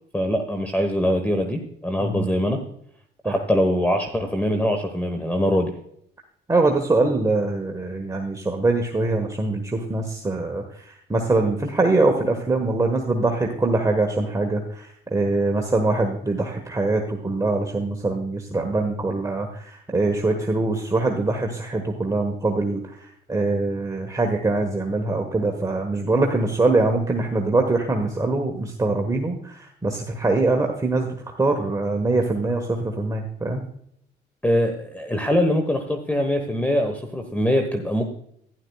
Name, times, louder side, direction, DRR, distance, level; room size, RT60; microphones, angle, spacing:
voice 1, 0.1-2.6 3.2-5.7 34.4-38.1, equal, 10° left, 5 dB, 1.3 m, -23 dB
voice 2, 6.5-22.8 23.3-33.6, right 2 dB, 15° right, 2 dB, 1.4 m, -23 dB
11.5 x 11.0 x 2.3 m, 0.69 s
cardioid pair, 90°, 20 cm